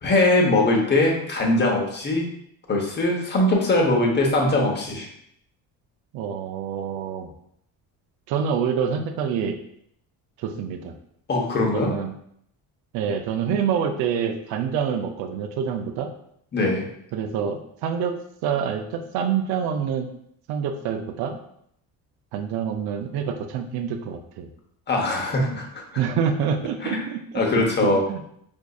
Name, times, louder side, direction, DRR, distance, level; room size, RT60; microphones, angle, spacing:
voice 1, 0.0-2.3 2.7-5.1 11.3-11.9 16.5-16.9 24.9-25.8 26.8-27.0 27.3-28.0, left 2 dB, 25° left, 0 dB, 0.8 m, -21 dB
voice 2, 6.1-7.3 8.3-9.6 10.4-10.9 11.7-12.1 12.9-16.1 17.1-18.2 18.4-20.1 20.5-21.4 22.3-24.5 26.0-27.6 28.1-28.2, right 7 dB, 75° right, 6 dB, 0.5 m, -26 dB
4.6 x 2.6 x 2.3 m, 0.71 s
cardioid pair, 115°, 38 cm